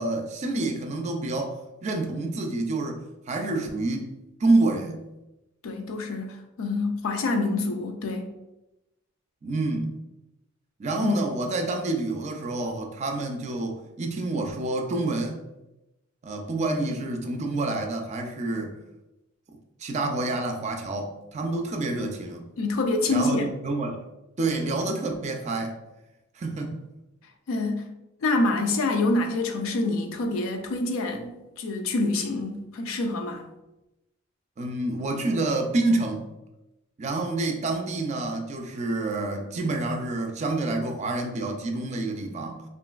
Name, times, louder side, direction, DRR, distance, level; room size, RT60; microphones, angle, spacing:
voice 1, 0.0-4.1 4.4-5.1 9.4-10.0 10.8-15.4 16.2-18.8 19.8-22.5 23.1-24.0 24.4-25.7 26.4-26.8 34.6-36.3 37.0-42.6, right 2 dB, 35° right, 0.3 m, -28 dB
voice 2, 5.6-8.3 11.0-11.1 22.6-23.5 27.5-27.9 28.2-33.5, left 2 dB, 85° left, 0.4 m, -26 dB
2.9 x 2.4 x 2.3 m
head